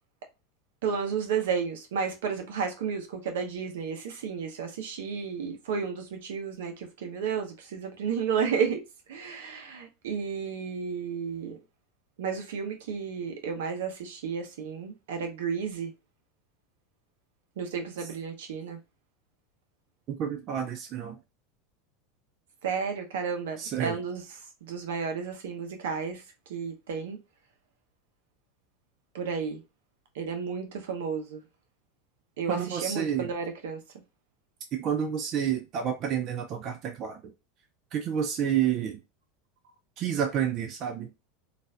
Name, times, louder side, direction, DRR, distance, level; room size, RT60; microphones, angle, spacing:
voice 1, 0.8-8.8 9.1-11.6 12.2-15.9 17.6-18.8 22.6-24.2 24.6-26.2 26.5-27.2 29.1-29.6 30.2-31.4 32.4-33.8, right 6 dB, 75° right, 0.8 m, -32 dB
voice 2, 20.1-21.2 23.6-24.0 32.5-33.3 34.7-37.2 37.9-39.0 40.0-41.1, right 8 dB, 45° right, 0.6 m, -29 dB
3.9 x 2.5 x 2.2 m
hypercardioid pair, 95°, 0 cm